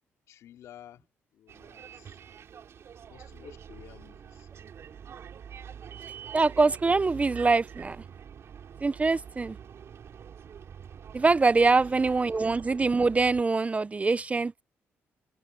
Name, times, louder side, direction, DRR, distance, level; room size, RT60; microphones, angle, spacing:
voice 1, 0.3-1.1 1.3-2.2 3.1-4.5 11.6-11.8, left 11 dB, 75° left, 3.0 m, -52 dB
Bus, 1.5-13.4, right 8 dB, 60° right, 3.8 m, -45 dB
voice 2, 6.3-8.0 8.8-9.6 11.1-14.5, right 3 dB, 25° right, 0.6 m, -24 dB
supercardioid pair, 70°, 5 cm